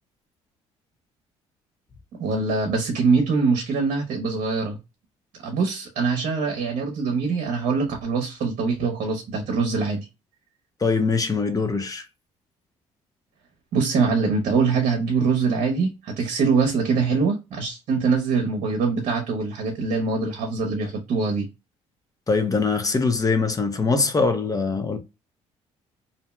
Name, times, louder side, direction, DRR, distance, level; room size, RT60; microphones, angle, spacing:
voice 1, 2.2-4.8 5.4-10.0 13.7-21.5, right 4 dB, 65° right, 0.8 m, -23 dB
voice 2, 10.8-12.1 22.3-25.0, left 4 dB, 25° left, 0.7 m, -22 dB
2.7 x 2.1 x 3.0 m
supercardioid pair, 65°, 14 cm